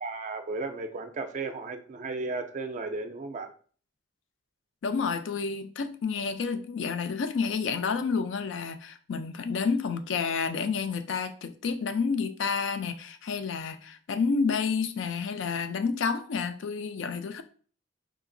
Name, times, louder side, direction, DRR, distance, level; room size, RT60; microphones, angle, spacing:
voice 1, 0.0-3.5, right 3 dB, 40° right, 0.3 m, -34 dB
voice 2, 4.8-17.4, left 5 dB, 65° left, 0.4 m, -30 dB
3.8 x 2.8 x 2.6 m
head